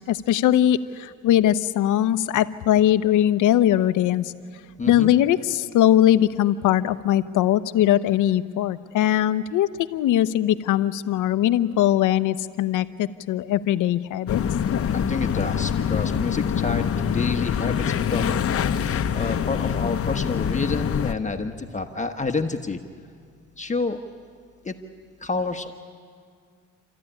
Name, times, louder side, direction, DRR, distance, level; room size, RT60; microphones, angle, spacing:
voice 1, 0.0-4.3 4.9-14.4, left 12 dB, 85° left, 13 dB, 0.8 m, -21 dB
voice 2, 4.8-5.1 14.9-22.8 23.6-24.0 24.6-24.8 25.2-25.7, left 3 dB, 25° left, 5 dB, 1.2 m, -29 dB
sound 1, 14.3-21.1, left 8 dB, 50° left, 0.9 m, -25 dB
29.0 x 14.0 x 10.0 m, 2.1 s
cardioid pair, 90°, 30 cm